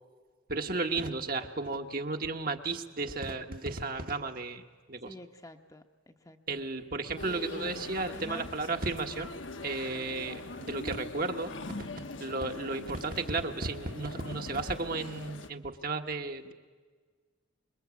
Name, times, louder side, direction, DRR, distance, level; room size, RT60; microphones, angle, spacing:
voice 1, 0.5-4.6 4.9-5.1 6.5-9.3 9.6-11.9 12.2-16.5, right 3 dB, 50° right, 5 dB, 1.4 m, -34 dB
voice 2, 5.0-6.4 7.2-8.5, left 1 dB, 15° left, 5 dB, 1.0 m, -46 dB
sound 1, 7.2-15.5, left 3 dB, 80° left, 1.2 m, -43 dB
26.5 x 22.0 x 8.4 m, 1.5 s
head